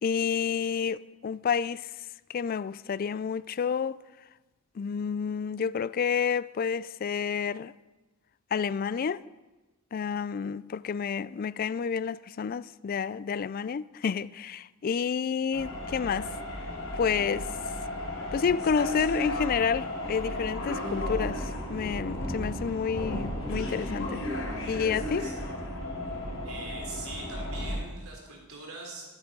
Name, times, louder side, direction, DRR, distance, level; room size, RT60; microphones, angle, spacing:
voice 1, 0.0-1.9 2.3-4.0 4.8-7.7 8.5-9.2 9.9-16.3 16.9-17.5 18.3-24.2 24.7-25.3, left 6 dB, 40° left, 0.3 m, -29 dB
sound 1, 15.5-27.8, left 1 dB, 65° left, 3.5 m, -34 dB
voice 2, 26.4-29.2, right 3 dB, 80° right, 3.4 m, -42 dB
12.0 x 11.5 x 5.3 m
head